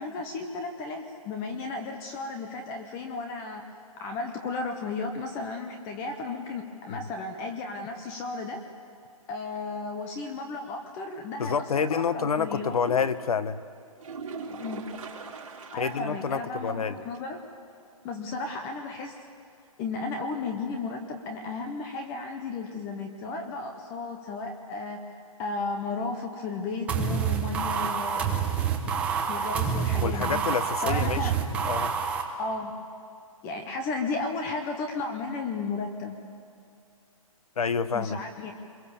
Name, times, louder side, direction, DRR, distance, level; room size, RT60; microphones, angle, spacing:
voice 1, 0.0-3.6 4.0-8.6 9.3-13.0 14.5-14.8 15.7-17.4 18.0-19.1 19.8-25.0 25.4-28.4 29.3-30.4 30.8-31.4 32.4-32.7 33.4-36.2 37.9-38.5, left 3 dB, 15° left, 5 dB, 0.9 m, -34 dB
voice 2, 11.4-13.6 15.8-17.0 30.0-31.3 31.6-31.9 37.6-38.2, left 6 dB, 75° left, 14 dB, 1.2 m, -28 dB
sound 1, 14.0-16.2 16.6-16.7 17.1-17.2 21.0-21.1, right 4 dB, 65° right, 4.4 m, -40 dB
sound 2, 26.9-32.2, right 7 dB, 5° right, 1.0 m, -27 dB
26.5 x 22.5 x 7.1 m, 2.4 s
hypercardioid pair, 170°, 19 cm